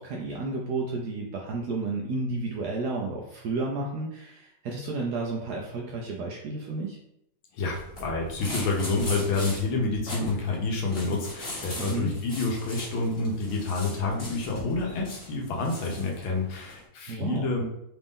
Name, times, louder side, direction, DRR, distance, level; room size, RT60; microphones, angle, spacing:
voice 1, 0.0-7.0 11.8-12.1 17.1-17.5, right 3 dB, 85° right, -2 dB, 0.8 m, -32 dB
voice 2, 7.5-17.6, left 3 dB, 70° left, 0 dB, 1.6 m, -28 dB
sound 1, 7.7-16.8, left 1 dB, 30° left, 1.4 m, -40 dB
4.1 x 2.6 x 3.6 m, 0.79 s
omnidirectional pair, 2.4 m